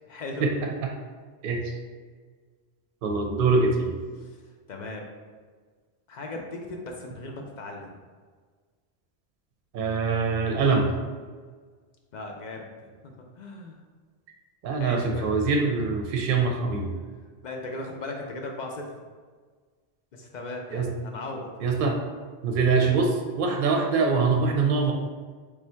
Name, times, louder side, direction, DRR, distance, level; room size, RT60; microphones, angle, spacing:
voice 1, 0.1-0.5 4.2-4.4 4.7-5.0 6.1-8.0 12.1-13.8 14.8-15.3 17.4-19.0 20.1-21.7, left 2 dB, 55° left, 1 dB, 0.5 m, -37 dB
voice 2, 3.0-3.9 9.7-10.9 14.6-16.9 20.7-20.9 21.6-22.0 22.4-24.9, right 4 dB, 60° right, 2 dB, 0.6 m, -23 dB
3.4 x 2.6 x 4.3 m, 1.5 s
omnidirectional pair, 1.1 m